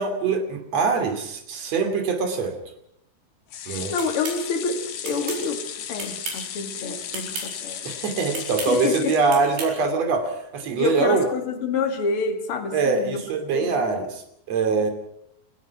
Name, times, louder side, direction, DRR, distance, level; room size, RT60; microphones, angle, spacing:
voice 1, 0.0-2.5 3.7-3.9 7.8-11.2 12.7-14.2 14.5-14.9, right 4 dB, 45° right, 5 dB, 3.4 m, -23 dB
sound 1, 3.5-9.8 10.2-10.3 10.6-10.7, left 9 dB, 55° left, 2.3 m, -35 dB
voice 2, 3.6-7.8 8.7-9.2 10.8-13.2 13.5-13.9, left 4 dB, 40° left, 5 dB, 2.5 m, -28 dB
sound 2, 4.0-4.4 5.0-5.4 6.0-6.5 7.1-7.5 8.3-8.7 9.3-9.7, right 4 dB, 85° right, 6.7 m, -33 dB
29.0 x 16.5 x 6.0 m, 0.75 s
omnidirectional pair, 4.8 m